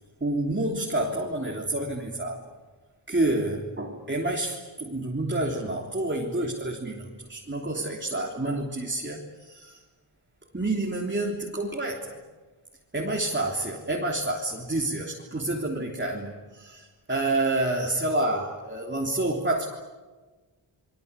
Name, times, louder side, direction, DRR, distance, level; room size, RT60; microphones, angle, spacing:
voice 1, 0.2-2.4 3.1-9.8 10.5-12.2 12.9-19.6, right 2 dB, 25° right, -1 dB, 3.5 m, -28 dB
28.5 x 23.0 x 8.4 m, 1.3 s
cardioid pair, 70°, 48 cm